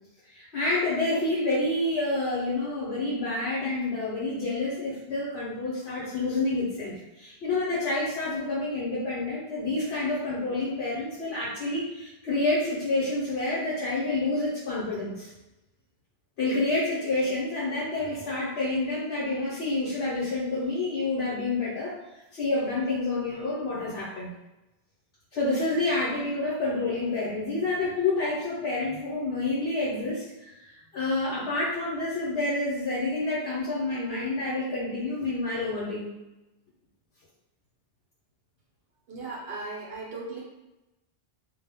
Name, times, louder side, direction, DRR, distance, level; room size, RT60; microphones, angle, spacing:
voice 1, 0.3-15.3 16.4-22.0 22.3-24.3 25.3-36.1, left 2 dB, 80° left, -7 dB, 0.9 m, -28 dB
voice 2, 39.1-40.4, right 3 dB, 75° right, -4 dB, 0.8 m, -37 dB
2.1 x 2.0 x 3.3 m, 0.99 s
omnidirectional pair, 1.0 m